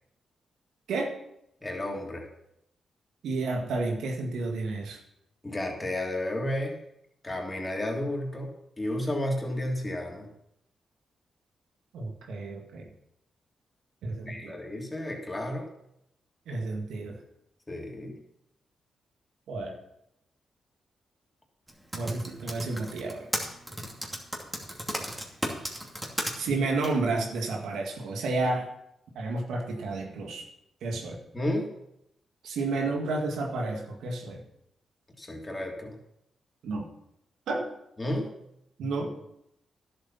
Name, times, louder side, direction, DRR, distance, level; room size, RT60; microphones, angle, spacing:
voice 1, 1.6-2.3 5.4-6.8 7.2-10.3 14.3-15.7 17.7-18.1 31.3-31.7 35.2-36.0 38.0-38.3, left 1 dB, 20° left, 0 dB, 3.2 m, -32 dB
voice 2, 3.2-5.0 11.9-12.9 14.0-14.6 16.5-17.2 19.5-19.7 21.9-23.3 26.4-28.7 29.1-30.5 30.8-31.2 32.4-34.4 36.6-36.9 37.5-37.7 38.8-39.1, right 3 dB, 85° right, 1 dB, 1.9 m, -31 dB
Typing, 21.7-26.3 26.8-26.9, equal, 10° right, 2.6 m, -33 dB
11.0 x 7.8 x 5.8 m, 0.79 s
supercardioid pair, 55°, 0 cm